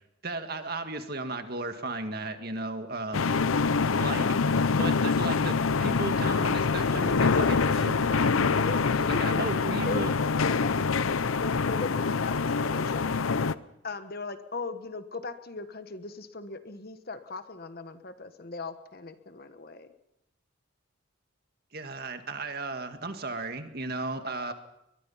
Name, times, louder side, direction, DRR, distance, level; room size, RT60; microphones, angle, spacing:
voice 1, 0.0-3.3 4.0-8.6 9.1-10.1 21.7-24.5, right 2 dB, 50° right, 7 dB, 1.8 m, -35 dB
sound 1, 3.1-13.5, left 4 dB, 85° left, 0.7 m, -25 dB
voice 2, 8.5-13.1 13.8-19.9, left 3 dB, 50° left, 10 dB, 1.2 m, -38 dB
22.0 x 22.0 x 5.7 m, 0.84 s
head